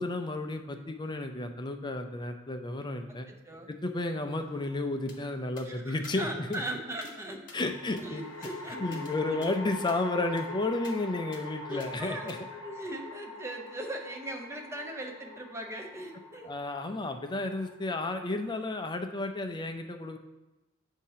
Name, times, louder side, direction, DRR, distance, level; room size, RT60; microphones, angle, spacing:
voice 1, 0.0-3.3 3.7-6.6 7.5-8.2 8.8-12.4 16.4-20.2, left 2 dB, 20° left, 6 dB, 0.4 m, -32 dB
voice 2, 3.3-3.7 5.6-7.4 8.0-9.0 9.3-9.4 11.7-12.3 12.6-16.5, right 1 dB, 15° right, 2 dB, 0.7 m, -39 dB
sound 1, 4.4-5.1 7.5-18.9, left 2 dB, 80° left, 0.7 m, -43 dB
sound 2, 5.1-5.2 5.6-5.7 6.0-6.2 6.5-6.6 7.0-7.2 7.5-9.1 9.4-9.5 9.9-10.0 10.4-10.5 10.8-11.0 11.3-11.4 11.8-11.9 12.3-12.4, left 4 dB, 40° left, 1.0 m, -52 dB
7.3 x 2.7 x 5.6 m, 1.0 s
head